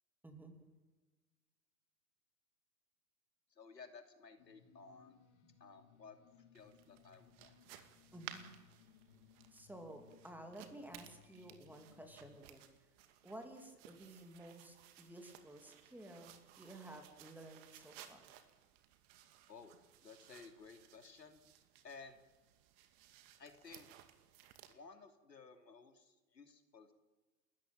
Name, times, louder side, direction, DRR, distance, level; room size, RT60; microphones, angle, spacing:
voice 1, 0.2-0.5 5.4-5.5 8.1-8.5 9.5-12.9 13.2-18.3, right 1 dB, 5° right, 5 dB, 2.9 m, -53 dB
voice 2, 3.5-5.2 5.6-6.2 6.5-7.9 19.5-19.7 20.0-21.4 21.8-22.2 23.4-23.9 24.7-26.9, left 4 dB, 80° left, 6 dB, 3.0 m, -56 dB
sound 1, 4.4-12.4, left 10 dB, 45° left, 2.4 m, -66 dB
sound 2, 6.6-24.7, right 11 dB, 35° right, 2.4 m, -59 dB
29.5 x 14.0 x 9.1 m, 1.2 s
figure-of-eight pair, 115°, 49 cm